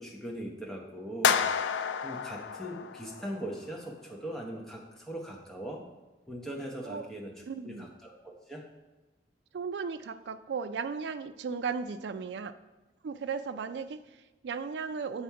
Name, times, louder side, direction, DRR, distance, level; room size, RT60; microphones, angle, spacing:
voice 1, 0.0-1.5 2.0-5.8 6.3-7.3 7.6-8.6, right 1 dB, ahead, -1 dB, 0.9 m, -40 dB
sound 1, 1.2-3.5, left 7 dB, 90° left, 0.4 m, -30 dB
voice 2, 7.4-7.9 9.5-12.5 13.0-15.2, right 5 dB, 75° right, 12 dB, 0.4 m, -36 dB
7.2 x 4.2 x 4.7 m, 1.2 s
head